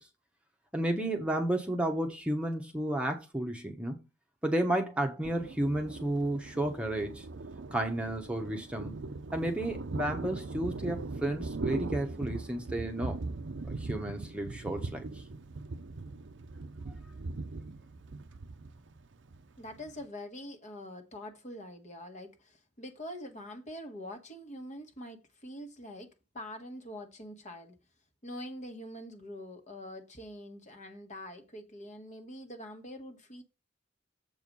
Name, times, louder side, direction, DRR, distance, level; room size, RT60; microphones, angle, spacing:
voice 1, 0.7-4.0 4.4-7.3 7.7-9.0 9.3-13.2 13.7-15.2, right 1 dB, 5° right, 1.1 m, -32 dB
Thunder, 5.2-20.0, right 3 dB, 65° right, 0.6 m, -40 dB
voice 2, 19.6-27.7 28.2-33.4, left 1 dB, 40° left, 1.6 m, -44 dB
7.7 x 4.7 x 5.3 m
head